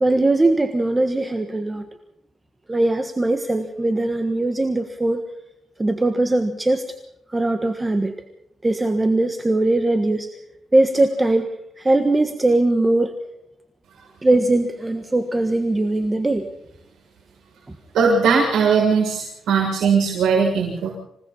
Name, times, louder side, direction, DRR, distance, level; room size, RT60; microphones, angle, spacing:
voice 1, 0.0-1.8 2.7-5.3 5.8-6.9 7.3-8.1 8.6-10.3 10.7-11.5 11.8-13.2 14.2-16.5 17.7-17.8, right 2 dB, 15° right, 6 dB, 1.5 m, -20 dB
voice 2, 17.9-20.9, right 5 dB, 80° right, -3 dB, 6.9 m, -19 dB
27.0 x 18.0 x 5.7 m, 0.77 s
cardioid pair, 155°, 0 cm